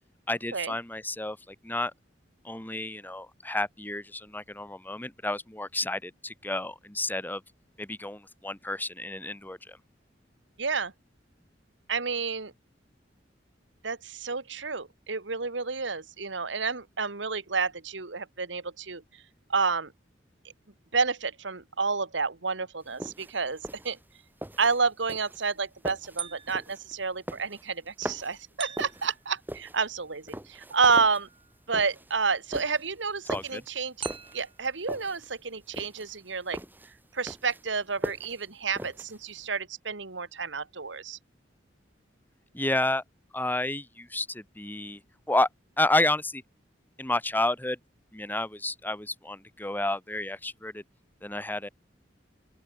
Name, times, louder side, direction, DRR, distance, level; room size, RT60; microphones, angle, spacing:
voice 1, 0.3-1.9 2.4-7.4 7.8-9.8 33.3-33.6 42.5-43.0 43.3-45.0 45.3-45.5 45.8-46.4 47.0-47.8 48.1-50.8 51.2-51.7, left 2 dB, 10° left, 1.9 m, -30 dB
voice 2, 10.6-10.9 11.9-12.5 13.8-19.0 19.5-19.9 20.9-24.0 24.6-31.3 31.7-33.9 34.3-36.6 37.1-41.2, right 5 dB, 80° right, 1.8 m, -30 dB
sound 1, 22.8-39.5, right 1 dB, 10° right, 3.1 m, -41 dB
sound 2, 26.2-26.8 28.6-29.2 30.8-31.6 34.0-34.6, right 7 dB, 30° right, 2.0 m, -40 dB
open air
head